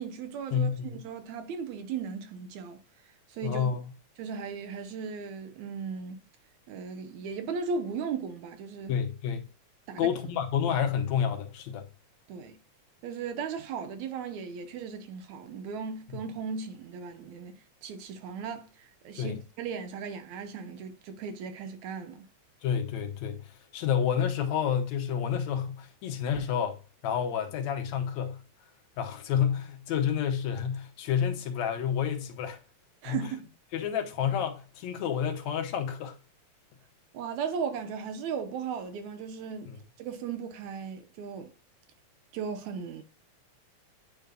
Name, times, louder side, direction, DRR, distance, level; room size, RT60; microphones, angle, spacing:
voice 1, 0.0-2.8 3.3-3.7 4.2-6.2 6.7-8.9 9.9-10.2 12.3-12.6 13.0-17.6 17.8-22.3 33.0-33.5 37.1-39.7 40.0-41.5 42.3-43.0, right 6 dB, 75° right, 2.2 m, -36 dB
voice 2, 0.5-1.0 3.4-3.9 8.9-9.5 10.0-11.9 16.1-16.2 19.2-19.4 22.6-23.4 23.7-26.8 27.0-28.4 29.0-32.6 33.0-33.2 33.7-36.2 39.7-39.8, left 8 dB, 75° left, 2.2 m, -29 dB
9.6 x 5.2 x 2.3 m
omnidirectional pair, 3.4 m